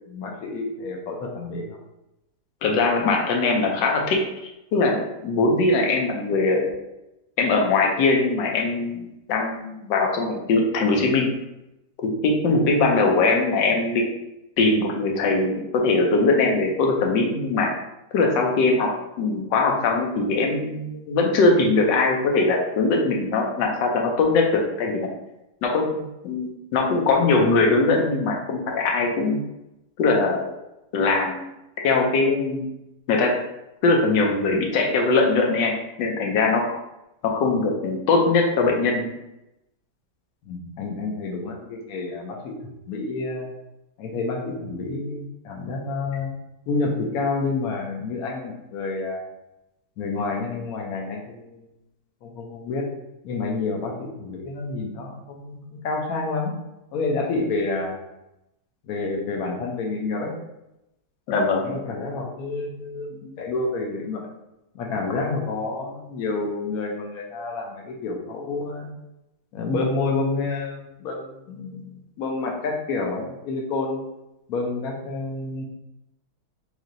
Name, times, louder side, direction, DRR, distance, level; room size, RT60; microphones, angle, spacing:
voice 1, 0.1-1.8 40.4-42.6 42.9-43.5 44.0-46.3 46.7-49.2 50.0-51.7 52.2-52.9 53.2-56.5 56.9-58.0 58.8-60.3 61.6-64.2 64.7-68.9 69.5-74.0 74.5-75.6, left 3 dB, 65° left, 0 dB, 1.1 m, -29 dB
voice 2, 2.6-4.2 4.7-6.7 7.4-11.3 12.0-14.0 14.6-17.7 18.1-18.9 19.2-25.0 25.6-29.4 30.0-30.4 30.9-31.4 31.8-32.7 33.1-33.3 33.8-36.7 37.2-39.1 61.3-61.8, left 3 dB, 90° left, 1 dB, 1.4 m, -21 dB
3.2 x 3.2 x 3.8 m, 0.89 s
omnidirectional pair, 1.9 m